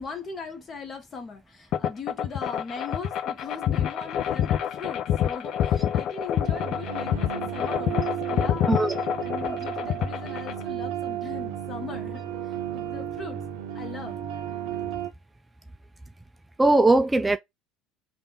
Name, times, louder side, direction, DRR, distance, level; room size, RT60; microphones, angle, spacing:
voice 1, 0.0-8.7 9.1-13.4 13.7-14.2, left 5 dB, 35° left, 1.2 m, -39 dB
sound 1, 1.7-10.6, left 10 dB, 55° left, 0.5 m, -27 dB
sound 2, 6.4-15.1, right 10 dB, 65° right, 0.6 m, -33 dB
voice 2, 16.6-17.4, right 2 dB, 15° right, 0.3 m, -20 dB
3.4 x 2.4 x 3.9 m
hypercardioid pair, 65°, 0 cm